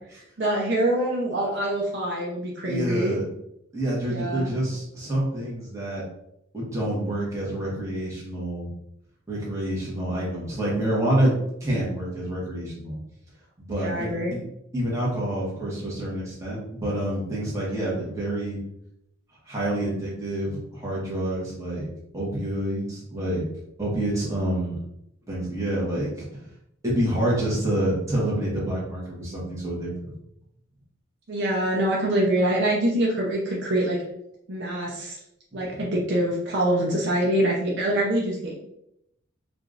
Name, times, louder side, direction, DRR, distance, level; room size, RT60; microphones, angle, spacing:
voice 1, 0.4-3.2 4.1-4.5 13.7-14.3 31.3-34.0 34.5-35.2 35.5-38.6, right 1 dB, 55° right, -3 dB, 0.7 m, -25 dB
voice 2, 2.7-3.2 3.7-6.0 6.5-8.7 9.3-13.0 13.6-14.4 14.7-18.6 19.4-21.9 22.1-23.4 23.8-24.8 25.3-26.3 26.8-30.1 35.6-35.8, right 1 dB, 15° right, -6 dB, 1.2 m, -27 dB
4.8 x 2.5 x 2.5 m, 0.79 s
head